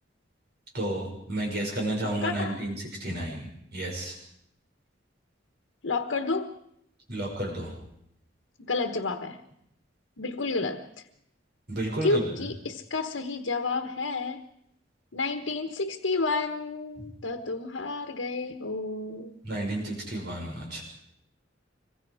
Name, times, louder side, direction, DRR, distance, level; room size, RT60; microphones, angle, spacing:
voice 1, 0.7-4.2 7.1-7.7 11.7-12.2 17.0-17.1 19.4-20.8, right 1 dB, 60° right, 0 dB, 6.4 m, -32 dB
voice 2, 2.2-2.6 5.8-6.5 8.7-9.4 10.2-10.9 12.0-14.4 15.1-19.4, left 3 dB, 85° left, 6 dB, 1.3 m, -30 dB
26.0 x 22.5 x 5.0 m, 0.74 s
head